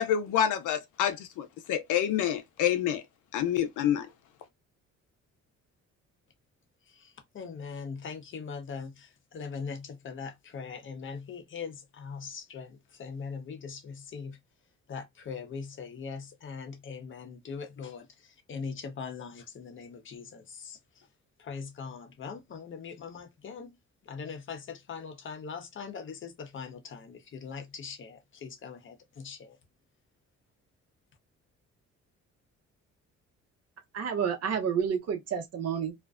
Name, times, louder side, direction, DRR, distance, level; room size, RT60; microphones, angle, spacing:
voice 1, 0.0-3.0 3.3-4.1, left 9 dB, 85° left, 0.6 m, -27 dB
voice 2, 6.9-14.4 14.9-21.1 21.4-23.8 24.0-29.6, left 5 dB, 40° left, 0.7 m, -41 dB
voice 3, 33.9-35.9, right 7 dB, 55° right, 0.9 m, -30 dB
2.5 x 2.1 x 2.4 m
cardioid pair, 90°, 30 cm